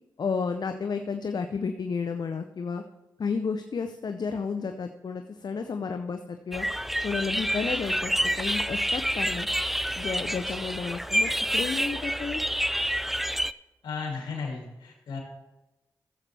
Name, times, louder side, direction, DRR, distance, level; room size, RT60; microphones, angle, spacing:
voice 1, 0.2-2.8 3.2-6.7 7.0-9.5 10.0-12.4, left 5 dB, 60° left, 6 dB, 0.6 m, -32 dB
sound 1, 6.5-13.5, equal, 5° right, 0.3 m, -28 dB
voice 2, 13.8-15.2, left 5 dB, 90° left, -1 dB, 2.4 m, -34 dB
15.0 x 7.5 x 3.4 m, 1.0 s
cardioid pair, 45°, 8 cm